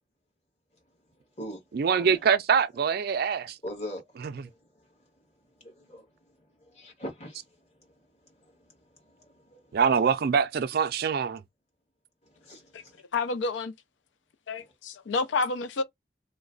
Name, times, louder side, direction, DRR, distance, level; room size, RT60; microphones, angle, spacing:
voice 1, 1.1-2.3 3.6-9.8 12.2-13.0, equal, 40° left, 1.5 m, -44 dB
voice 2, 1.7-3.6 9.7-11.4, right 6 dB, 55° right, 0.4 m, -24 dB
voice 3, 13.1-13.7 14.5-15.8, left 3 dB, 80° left, 0.4 m, -29 dB
3.1 x 2.2 x 3.8 m
head